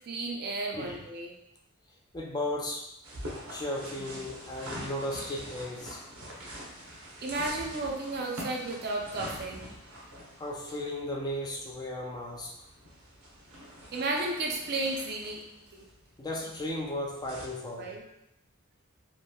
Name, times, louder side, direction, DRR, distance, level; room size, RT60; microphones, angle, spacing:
voice 1, 0.1-1.3 4.0-4.2 7.2-9.6 13.9-15.4 15.7-15.9 17.8-18.0, right 2 dB, 50° right, 0 dB, 0.5 m, -33 dB
voice 2, 2.1-2.8 3.5-6.0 10.4-12.5 16.2-17.9, left 1 dB, 20° left, -2 dB, 0.4 m, -35 dB
sound 1, 3.0-17.5, equal, 80° right, 0.8 m, -45 dB
3.0 x 2.6 x 2.2 m, 0.84 s
head